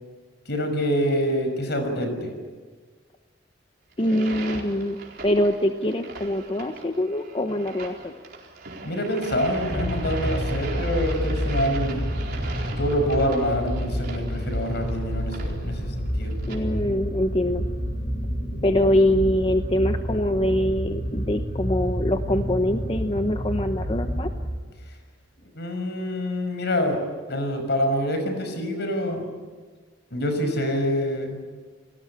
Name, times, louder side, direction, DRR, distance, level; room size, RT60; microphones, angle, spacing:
voice 1, 0.5-2.3 8.8-12.0 12.6-16.4 25.5-27.0 27.3-29.2 30.1-31.4, equal, 65° left, 6 dB, 5.9 m, -26 dB
sound 1, 3.9-16.6, right 3 dB, 55° right, 4.5 m, -39 dB
voice 2, 4.0-5.0 5.2-8.1 16.5-17.7 18.6-24.3, left 1 dB, 30° left, 6 dB, 1.0 m, -24 dB
sound 2, 9.5-24.9, equal, 45° left, 4.0 m, -29 dB
30.0 x 19.0 x 8.6 m, 1.5 s
head